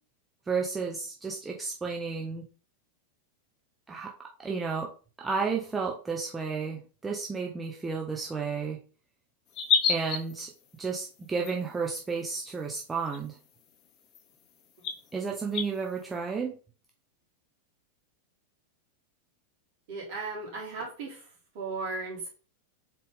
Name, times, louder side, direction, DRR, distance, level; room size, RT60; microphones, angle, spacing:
voice 1, 0.5-2.5 3.9-4.1 4.4-4.9 5.2-8.8 9.9-10.5 10.8-13.4 15.1-16.5, right 5 dB, 15° right, -1 dB, 0.7 m, -32 dB
sound 1, 9.5-10.4 11.4-11.5 12.7-12.8 13.1-13.2 14.1-14.2 14.8-14.9 15.5-15.6, left 7 dB, 35° left, 0.6 m, -26 dB
voice 2, 19.9-21.3 21.5-22.3, right 3 dB, 50° right, -3 dB, 2.5 m, -36 dB
4.1 x 3.6 x 3.5 m, 0.37 s
figure-of-eight pair, 90°, 0 cm